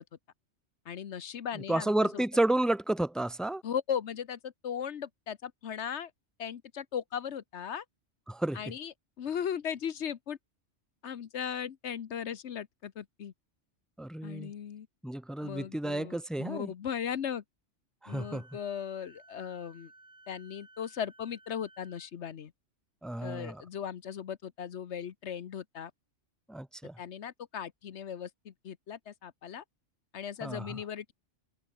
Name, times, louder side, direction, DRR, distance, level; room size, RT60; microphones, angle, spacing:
voice 1, 0.9-2.2 3.6-6.1 6.4-7.8 8.5-10.4 11.0-13.3 14.2-14.9 15.4-17.4 18.1-19.9 20.3-22.5 23.2-25.9 27.0-29.6 30.1-31.1, left 8 dB, 70° left, 1.2 m, -37 dB
voice 2, 1.7-3.6 8.3-8.6 14.0-14.5 15.0-16.7 18.0-18.4 23.0-23.6 26.5-26.9 30.4-30.8, right 1 dB, ahead, 0.3 m, -31 dB
Wind instrument woodwind instrument, 18.1-22.1, right 2 dB, 80° right, 5.8 m, -58 dB
omnidirectional pair, 1.2 m